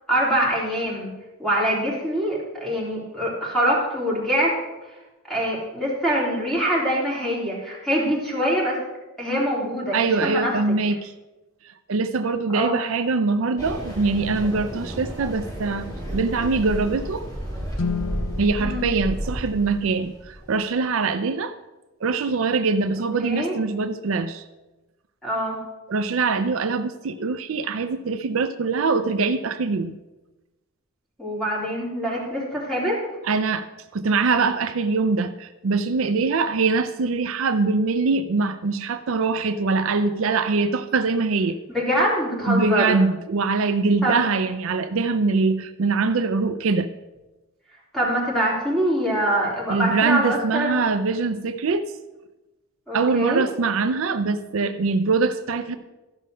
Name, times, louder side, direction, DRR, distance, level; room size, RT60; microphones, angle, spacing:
voice 1, 0.1-1.1 1.4-4.5 5.3-8.8 9.2-10.5 12.5-12.8 18.6-18.8 23.2-23.5 25.2-25.6 31.2-33.0 41.7-43.0 44.0-44.2 47.9-50.8 52.9-53.5, equal, ahead, -5 dB, 3.3 m, -24 dB
voice 2, 9.9-11.1 11.6-17.3 18.4-21.5 22.0-24.4 25.9-30.0 33.2-33.7 33.9-41.6 42.5-46.9 49.7-51.9 52.9-55.8, right 4 dB, 70° right, 10 dB, 0.5 m, -23 dB
sound 1, 13.6-20.6, equal, 20° left, 3.0 m, -32 dB
Guitar, 17.7-20.3, left 5 dB, 85° left, 0.6 m, -33 dB
13.0 x 5.5 x 6.3 m, 1.1 s
head